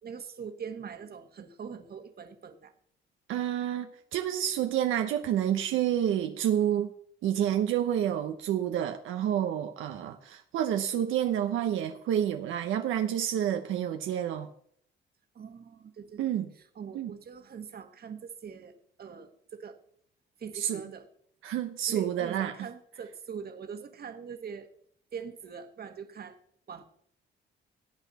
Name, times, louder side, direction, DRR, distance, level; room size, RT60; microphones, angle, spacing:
voice 1, 0.0-2.7 15.3-16.3 16.5-19.8 20.4-21.1 21.9-24.7 25.1-26.4 26.7-26.8, right 6 dB, 50° right, 1.6 m, -42 dB
voice 2, 3.3-6.9 7.2-14.5 16.2-16.5 16.9-17.1 20.5-20.8 21.4-22.5, right 10 dB, 85° right, 0.9 m, -29 dB
18.5 x 8.2 x 4.2 m
cardioid pair, 90°, 20 cm